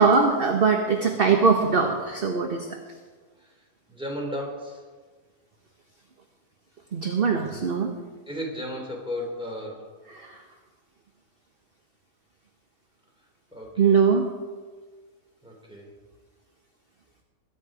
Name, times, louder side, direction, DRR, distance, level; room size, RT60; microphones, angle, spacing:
voice 1, 0.0-2.8 6.9-7.9 10.1-10.4 13.8-14.2, right 5 dB, 40° right, 3 dB, 1.3 m, -21 dB
voice 2, 3.9-4.8 8.3-9.9 13.5-14.0 15.4-15.9, equal, 5° right, -1 dB, 3.4 m, -35 dB
21.5 x 9.6 x 5.0 m, 1.4 s
omnidirectional pair, 1.6 m